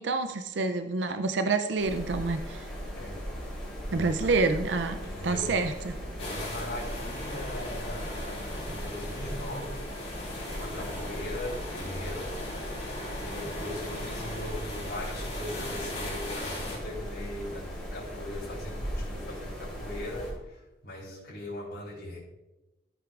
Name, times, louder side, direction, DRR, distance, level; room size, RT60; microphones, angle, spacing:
voice 1, 0.0-2.7 3.9-6.0, right 3 dB, 85° right, 9 dB, 0.5 m, -28 dB
sound 1, 1.8-20.3, equal, 5° left, 3.5 m, -38 dB
voice 2, 3.0-3.3 3.9-4.3 5.0-5.6 6.2-9.9 10.5-12.3 13.2-22.2, left 1 dB, 85° left, -9 dB, 2.9 m, -40 dB
sound 2, 6.2-16.8, left 1 dB, 35° left, 3.6 m, -39 dB
13.5 x 7.9 x 2.5 m, 1.0 s
head